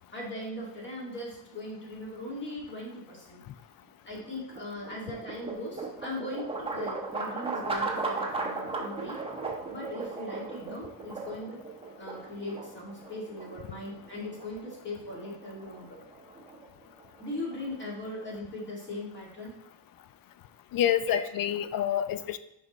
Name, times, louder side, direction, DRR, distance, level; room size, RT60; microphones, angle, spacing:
voice 1, 0.1-3.4 4.0-9.2 9.7-11.6 12.0-16.0 17.2-19.6 21.1-21.2, left 1 dB, 25° left, -4 dB, 2.2 m, -39 dB
sound 1, 4.2-18.3, right 3 dB, 15° right, 0.9 m, -37 dB
voice 2, 20.7-22.4, left 10 dB, 55° left, 13 dB, 0.4 m, -27 dB
6.1 x 5.1 x 3.1 m, 0.85 s
cardioid pair, 130°, 43 cm